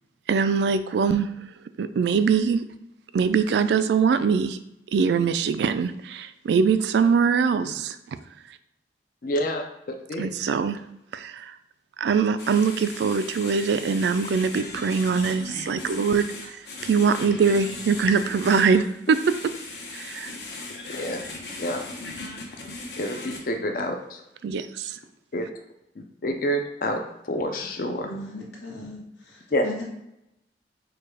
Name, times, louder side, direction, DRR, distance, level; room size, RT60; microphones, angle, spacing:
voice 1, 0.3-1.3 1.8-2.6 3.1-4.6 4.9-8.2 10.2-10.8 11.1-11.5 12.0-16.6 16.8-19.3 19.9-20.3 24.4-25.0, right 5 dB, 70° right, 0.3 m, -22 dB
voice 2, 9.2-9.6 10.1-10.3 20.9-21.2 21.6-21.8 23.0-24.2 25.3-25.5 26.2-27.0 27.2-28.1 29.5-29.6, equal, 50° left, 0.5 m, -27 dB
Household Radio Scan Static, 12.4-23.4, left 2 dB, 65° left, 0.9 m, -38 dB
voice 3, 28.0-29.0 29.6-29.8, left 1 dB, 85° left, 1.3 m, -36 dB
4.6 x 2.3 x 4.7 m
head